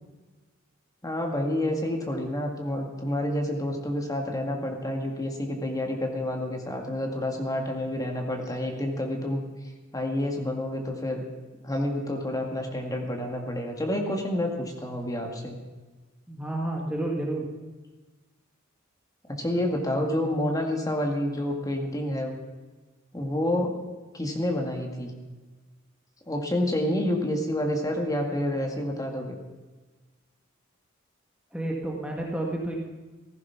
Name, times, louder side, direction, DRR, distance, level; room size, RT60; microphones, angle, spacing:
voice 1, 1.0-9.4 9.9-11.2 11.6-15.6 19.3-22.4 23.1-23.8 24.1-25.1 26.3-29.4, left 1 dB, 15° left, 2 dB, 2.1 m, -29 dB
voice 2, 16.3-17.5 31.5-32.7, right 1 dB, 5° right, -2 dB, 1.7 m, -30 dB
15.5 x 14.5 x 5.9 m, 1.3 s
head